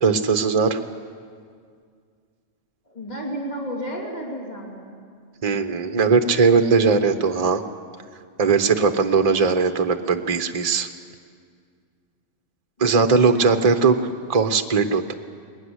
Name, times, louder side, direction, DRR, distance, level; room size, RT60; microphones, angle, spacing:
voice 1, 0.0-0.8 5.4-7.6 8.4-10.9 12.8-14.0 14.3-15.1, right 5 dB, 35° right, 8 dB, 0.9 m, -19 dB
voice 2, 2.9-4.9 12.9-13.7, equal, 35° left, -2 dB, 3.4 m, -33 dB
21.0 x 19.0 x 9.7 m, 2.1 s
omnidirectional pair, 1.2 m